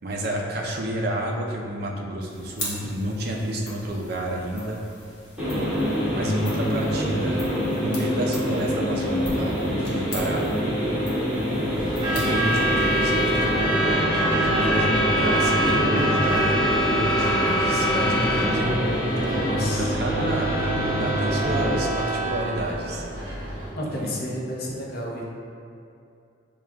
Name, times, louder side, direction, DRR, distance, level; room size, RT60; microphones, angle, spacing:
voice 1, 0.0-4.8 6.1-7.4 7.7-10.4 12.1-13.2 14.3-18.7 19.6-23.0 23.8-24.1, right 1 dB, 55° right, -1 dB, 0.4 m, -30 dB
sound 1, 2.2-13.9, left 1 dB, 70° left, 1.2 m, -40 dB
sound 2, 5.4-21.7, equal, 5° right, 1.1 m, -26 dB
Truck / Alarm, 11.8-23.7, right 1 dB, 25° right, 1.2 m, -25 dB
voice 2, 19.4-19.9 23.8-25.4, left 1 dB, 55° left, -3 dB, 0.6 m, -32 dB
6.1 x 2.3 x 2.2 m, 2.5 s
head